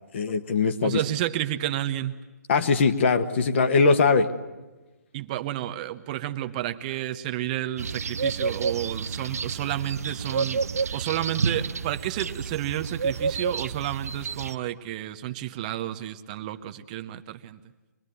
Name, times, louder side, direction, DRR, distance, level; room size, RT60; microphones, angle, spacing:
voice 1, 0.1-1.0 2.5-4.3, left 4 dB, 40° left, 8 dB, 1.4 m, -21 dB
voice 2, 0.8-2.2 5.1-10.6 10.9-17.6, right 13 dB, 25° right, 8 dB, 0.8 m, -31 dB
sound 1, 7.8-14.5, right 5 dB, 60° right, 0.8 m, -30 dB
24.5 x 20.5 x 9.3 m, 1.2 s
figure-of-eight pair, 135°, 9 cm